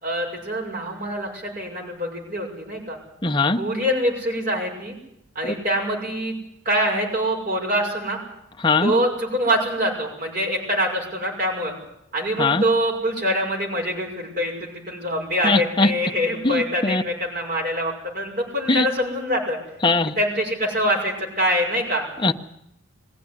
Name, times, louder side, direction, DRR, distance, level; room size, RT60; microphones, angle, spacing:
voice 1, 0.0-3.0 3.5-4.9 5.3-6.4 6.6-8.2 8.8-11.7 12.1-19.6 20.2-22.0, equal, 45° right, 6.0 m, -24 dB
voice 2, 3.2-3.6 8.6-8.9 12.4-12.6 15.4-15.9 16.4-17.0 18.7-18.9 19.8-20.2 22.2-22.3, left 3 dB, 25° left, 1.0 m, -20 dB
21.5 x 15.5 x 9.8 m
head